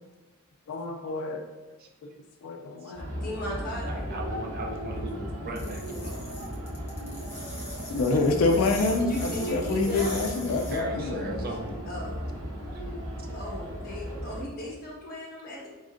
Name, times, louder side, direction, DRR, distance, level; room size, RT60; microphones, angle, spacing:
voice 1, 0.7-1.4 2.0-2.1 2.4-3.2 7.9-11.4, left 3 dB, 65° left, 3 dB, 0.3 m, -27 dB
sound 1, 2.9-14.4, equal, 75° right, 1.1 m, -36 dB
voice 2, 3.1-4.1 8.9-10.1 11.9-12.3 13.3-15.7, left 1 dB, 40° left, -4 dB, 1.2 m, -37 dB
voice 3, 3.8-6.2 10.7-11.7 12.7-12.8, right 1 dB, 40° right, 2 dB, 0.5 m, -37 dB
sound 2, 5.6-10.8, left 1 dB, 10° left, 0.7 m, -41 dB
4.1 x 3.8 x 2.5 m, 1.2 s
head